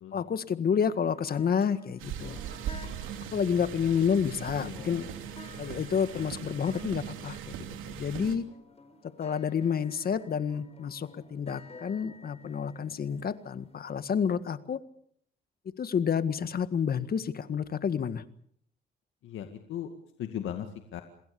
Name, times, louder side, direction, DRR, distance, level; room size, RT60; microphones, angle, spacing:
voice 1, 0.1-2.4 3.3-5.1 5.6-7.5 7.9-8.4 9.2-14.8 15.8-18.2, left 7 dB, 50° left, 12 dB, 1.8 m, -29 dB
sound 1, 1.0-14.0, left 3 dB, 30° left, 4.8 m, -53 dB
sound 2, 2.0-8.4, right 9 dB, 90° right, 2.9 m, -40 dB
voice 2, 4.6-5.1 19.2-19.9 20.2-20.7 20.9-21.0, left 10 dB, 80° left, 6 dB, 2.2 m, -37 dB
27.5 x 20.5 x 7.1 m, 0.66 s
cardioid pair, 90°, 20 cm